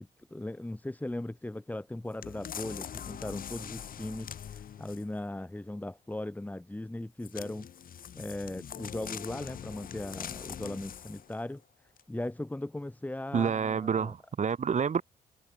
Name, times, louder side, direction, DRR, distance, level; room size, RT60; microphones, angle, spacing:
voice 1, 0.3-7.7 8.1-14.1, left 1 dB, 10° left, 2.1 m, -38 dB
sound 1, 2.2-5.2 7.2-11.4 12.0-12.1, left 9 dB, 65° left, 7.0 m, -43 dB
voice 2, 13.3-15.0, right 6 dB, 50° right, 4.1 m, -28 dB
cardioid pair, 70°, 16 cm